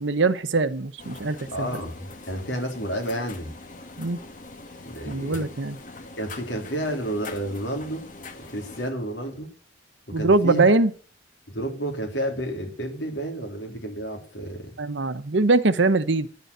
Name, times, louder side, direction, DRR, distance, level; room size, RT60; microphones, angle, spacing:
voice 1, 0.0-1.7 4.0-4.2 5.1-5.8 10.1-10.9 14.8-16.3, right 3 dB, 65° right, 0.9 m, -22 dB
sound 1, 1.0-8.9, left 3 dB, 40° left, 1.4 m, -43 dB
voice 2, 1.5-3.5 4.8-5.4 6.2-8.1 8.5-9.5 10.1-10.7 11.5-14.8, right 1 dB, 60° left, 3.4 m, -31 dB
10.5 x 7.0 x 8.1 m
head